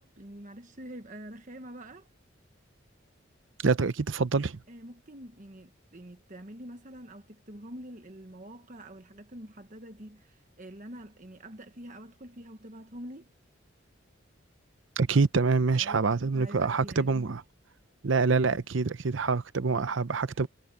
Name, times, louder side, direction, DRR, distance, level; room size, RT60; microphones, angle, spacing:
voice 1, 0.0-2.1 4.7-13.3 15.7-17.3, right 1 dB, 40° right, 1.3 m, -46 dB
voice 2, 3.6-4.6 15.0-17.4 18.0-20.5, right 4 dB, 70° right, 0.7 m, -26 dB
head